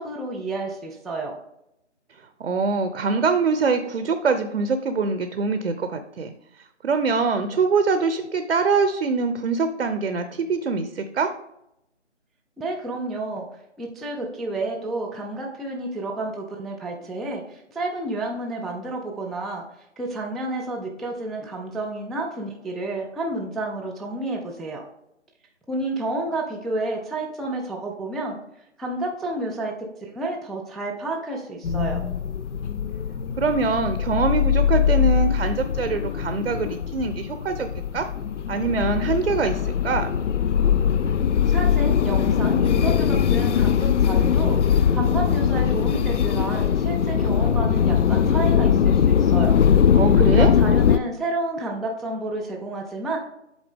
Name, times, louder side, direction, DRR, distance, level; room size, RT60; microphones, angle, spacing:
voice 1, 0.0-1.4 12.6-13.5 13.8-19.6 20.0-24.8 25.7-28.4 28.8-29.7 30.0-32.0 41.5-49.6 50.3-53.2, right 2 dB, ahead, -1 dB, 0.3 m, -30 dB
voice 2, 2.4-11.3 33.4-38.1 38.5-40.2 49.9-50.5, right 4 dB, 65° right, 9 dB, 0.7 m, -24 dB
sound 1, 31.6-51.0, left 8 dB, 75° left, 0.5 m, -21 dB
8.0 x 3.9 x 3.5 m, 0.82 s
figure-of-eight pair, 160°, 36 cm